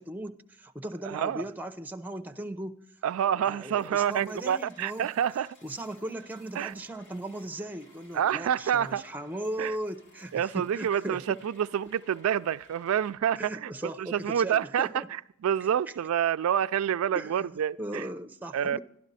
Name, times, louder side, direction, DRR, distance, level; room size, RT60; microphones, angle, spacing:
voice 1, 0.0-2.8 3.3-5.1 5.6-11.4 13.4-15.1 17.1-17.5 17.8-18.8, right 1 dB, 10° right, 0.7 m, -37 dB
voice 2, 1.0-1.5 3.0-5.5 6.6-6.7 8.1-9.0 9.6-9.8 10.3-13.7 14.0-18.1 18.5-18.8, right 9 dB, 90° right, 0.3 m, -28 dB
sound 1, 3.8-13.1, left 1 dB, 65° left, 2.4 m, -58 dB
12.0 x 12.0 x 4.1 m
head